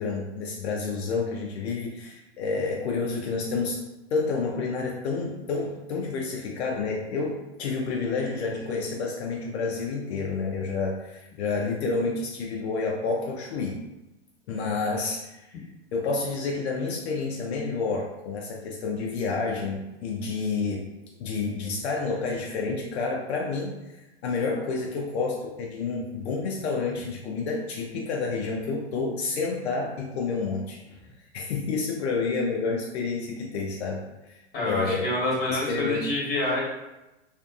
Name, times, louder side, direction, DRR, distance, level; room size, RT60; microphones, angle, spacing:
voice 1, 0.0-3.8 4.1-13.8 14.5-15.7 15.9-20.9 21.2-35.1 35.5-36.1, left 4 dB, 75° left, -1 dB, 0.5 m, -29 dB
voice 2, 34.5-36.6, left 1 dB, 30° left, -4 dB, 1.1 m, -27 dB
2.5 x 2.5 x 2.3 m, 1.0 s
hypercardioid pair, 110°, 33 cm